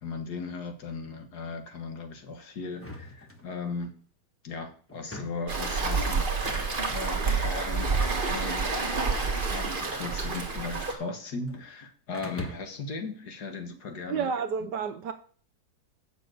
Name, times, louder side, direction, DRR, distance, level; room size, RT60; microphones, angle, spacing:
voice 1, 0.0-3.9 4.4-7.9 8.3-8.8 9.3-14.3 14.6-14.7, left 4 dB, 55° left, 1.8 m, -37 dB
sound 1, 2.7-3.9 4.9-5.6 6.2-7.1 7.9-8.3 9.1-10.6 10.9-11.6 12.1-12.9, left 1 dB, 10° left, 0.9 m, -44 dB
Waves surf, 5.5-10.9, right 4 dB, 30° right, 1.5 m, -28 dB
voice 2, 14.1-15.1, right 6 dB, 65° right, 1.2 m, -30 dB
7.3 x 6.2 x 7.8 m
omnidirectional pair, 2.2 m